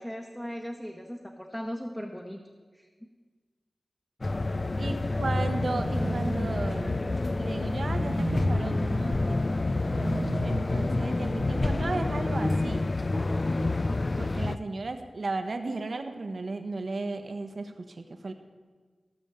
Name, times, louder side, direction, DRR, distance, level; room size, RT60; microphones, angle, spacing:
voice 1, 0.0-2.4 2.7-2.9 4.8-5.7, equal, 10° left, 1 dB, 1.2 m, -38 dB
sound 1, 4.2-14.6, left 2 dB, 45° left, 0.4 m, -28 dB
voice 2, 4.8-7.0 7.4-9.4 10.4-12.9 14.2-18.3, right 3 dB, 70° right, 7 dB, 1.1 m, -34 dB
sound 2, 5.6-11.7, right 2 dB, 45° right, 1.0 m, -37 dB
16.0 x 6.3 x 6.9 m, 1.5 s
cardioid pair, 45°, 0 cm